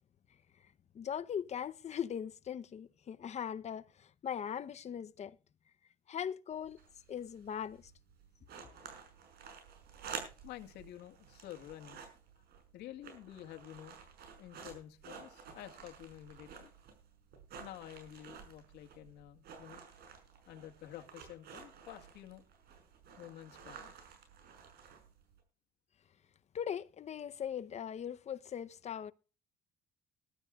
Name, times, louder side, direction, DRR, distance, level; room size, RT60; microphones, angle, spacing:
voice 1, 0.9-5.4 6.1-6.8 7.1-7.8 26.5-29.1, left 8 dB, 40° left, 0.8 m, -40 dB
sound 1, 6.5-25.4, right 6 dB, 70° right, 5.7 m, -52 dB
voice 2, 10.4-12.0 12.7-14.0 14.4-16.7 17.6-19.8 20.5-22.4 23.2-23.9, left 13 dB, 80° left, 1.9 m, -50 dB
21.5 x 12.0 x 2.4 m
cardioid pair, 110°, 17 cm